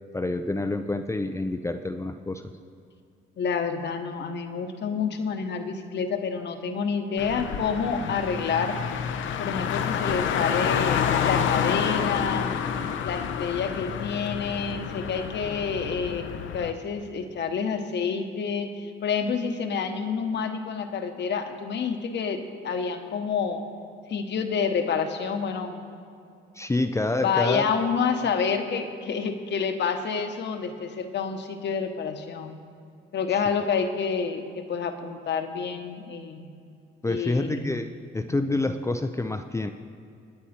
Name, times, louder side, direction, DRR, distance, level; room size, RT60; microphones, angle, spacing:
voice 1, 0.1-2.5 26.6-27.7 37.0-39.7, left 2 dB, 15° left, 7 dB, 0.5 m, -27 dB
voice 2, 3.4-8.8 9.4-12.5 13.0-23.6 24.1-25.8 27.2-32.6 33.1-36.5 37.1-37.7 38.3-38.4, left 6 dB, 60° left, 6 dB, 1.2 m, -28 dB
Car, 7.2-16.7, left 8 dB, 75° left, 0.8 m, -28 dB
24.5 x 9.6 x 4.4 m, 2.4 s
cardioid pair, 90°, 20 cm